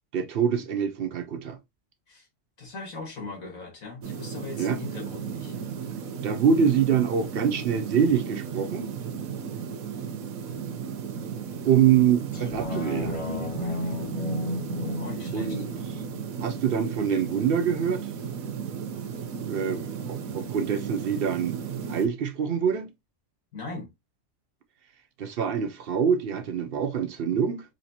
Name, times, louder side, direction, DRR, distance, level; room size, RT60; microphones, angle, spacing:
voice 1, 0.1-1.6 4.6-4.8 6.2-8.9 11.6-13.1 15.3-15.7 16.4-18.0 19.4-21.6 21.9-22.9 25.2-27.6, right 7 dB, 60° right, 0.6 m, -25 dB
voice 2, 2.6-5.6 14.8-15.6 23.5-23.9, left 3 dB, 80° left, 2.1 m, -39 dB
sound 1, 4.0-22.1, right 7 dB, 85° right, 1.1 m, -35 dB
sound 2, 12.3-17.4 17.8-17.9, left 2 dB, 25° left, 0.9 m, -34 dB
4.4 x 2.8 x 2.8 m
omnidirectional pair, 1.4 m